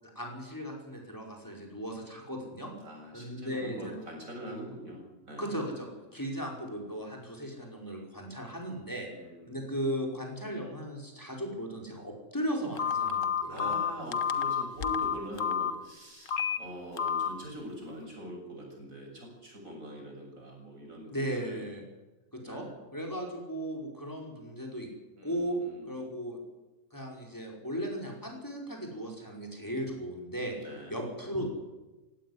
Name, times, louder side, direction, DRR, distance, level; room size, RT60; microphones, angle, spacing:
voice 1, 0.0-2.7 3.1-3.9 5.4-9.1 9.5-13.8 21.1-21.8 22.3-22.6 22.9-24.9 25.2-25.6 25.9-26.4 26.9-30.5 30.9-31.5, equal, 15° left, 1 dB, 5.3 m, -36 dB
voice 2, 2.8-5.6 9.1-9.7 13.5-21.6 22.4-22.8 25.2-25.9 30.6-31.0, equal, 70° right, 1 dB, 7.3 m, -44 dB
Telephone, 12.8-15.7 16.3-16.6 17.0-17.3, left 8 dB, 65° left, 1.5 m, -29 dB
18.0 x 16.5 x 9.8 m, 1.1 s
omnidirectional pair, 1.5 m